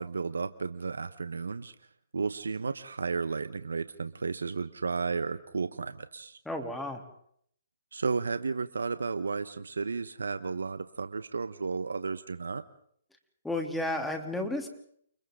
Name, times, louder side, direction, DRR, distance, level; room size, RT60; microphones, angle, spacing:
voice 1, 0.0-1.7 2.1-6.4 7.9-12.6, right 4 dB, 85° right, 11 dB, 1.1 m, -33 dB
voice 2, 6.4-7.0 13.4-14.7, left 1 dB, 5° left, 3 dB, 3.2 m, -32 dB
29.5 x 29.5 x 3.9 m, 0.66 s
hypercardioid pair, 145°, 0 cm